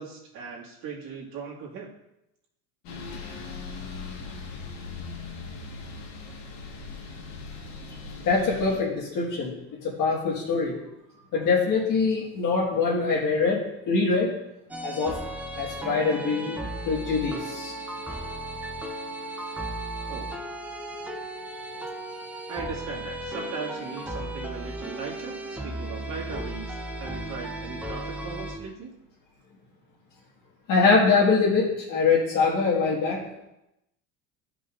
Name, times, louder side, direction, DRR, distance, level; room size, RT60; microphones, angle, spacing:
voice 1, 0.0-1.9 20.1-20.3 22.5-28.9, right 5 dB, 55° right, -3 dB, 2.1 m, -38 dB
sound 1, 2.8-8.8, left 4 dB, 75° left, 1.6 m, -39 dB
voice 2, 8.2-9.5 9.8-10.8 11.3-14.3 14.8-15.2 15.6-17.7 30.7-33.2, left 4 dB, 50° left, -4 dB, 1.7 m, -23 dB
sound 2, 14.7-28.6, right 1 dB, 5° right, 0.5 m, -35 dB
12.5 x 5.4 x 2.5 m, 0.88 s
cardioid pair, 140°, 39 cm